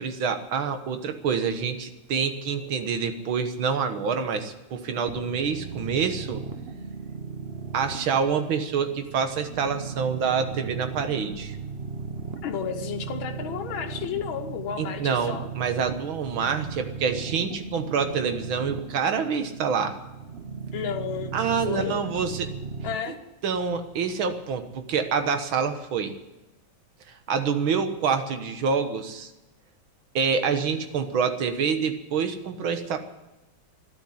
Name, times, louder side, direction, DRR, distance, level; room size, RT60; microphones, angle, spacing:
voice 1, 0.0-6.4 7.7-11.6 14.8-20.0 21.3-22.5 23.1-23.2 23.4-26.1 27.1-29.3 30.2-33.0, right 6 dB, 85° right, 8 dB, 2.1 m, -27 dB
sound 1, 5.1-23.0, right 6 dB, 55° right, 0.6 m, -37 dB
voice 2, 12.4-15.5 20.7-21.4 21.7-21.9 22.8-23.2, left 8 dB, 85° left, 4 dB, 1.9 m, -32 dB
13.0 x 11.5 x 9.6 m, 1.0 s
omnidirectional pair, 2.2 m